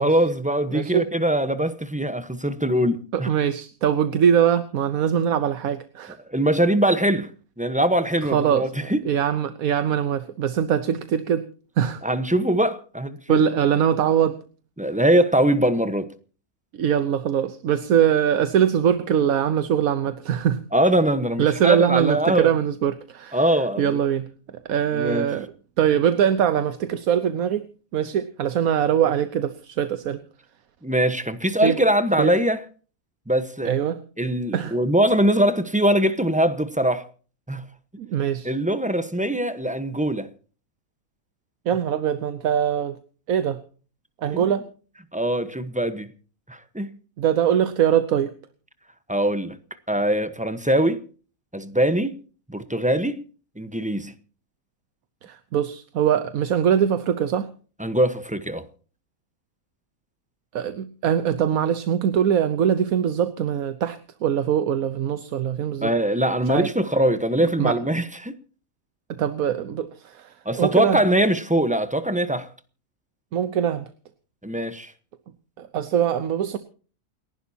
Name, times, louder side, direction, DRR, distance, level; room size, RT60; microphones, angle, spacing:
voice 1, 0.0-3.3 6.3-7.3 7.6-9.0 12.0-13.4 14.8-16.1 20.7-22.5 23.3-24.0 24.9-25.3 30.8-32.6 33.3-33.8 34.2-37.1 37.5-37.6 38.4-40.3 44.3-44.5 45.1-46.1 46.5-46.9 49.1-49.6 49.9-51.0 51.5-52.2 52.5-53.2 53.6-54.1 57.8-58.6 65.8-68.3 70.4-72.5 74.4-74.9, right 1 dB, 5° right, 0.9 m, -22 dB
voice 2, 0.7-1.1 3.1-6.2 8.3-11.4 11.8-12.0 13.3-14.4 16.7-20.6 21.4-23.4 23.8-24.3 24.7-25.5 25.8-27.7 27.9-30.2 31.6-31.8 32.2-32.3 33.6-34.0 34.5-34.8 38.0-38.5 41.7-43.0 43.3-43.6 44.2-44.7 47.2-48.3 55.2-57.5 60.5-65.9 66.5-66.7 67.6-67.8 69.1-71.0 73.3-73.8 75.6-76.6, right 9 dB, 75° right, 1.3 m, -22 dB
29.0 x 11.0 x 2.8 m
omnidirectional pair, 1.5 m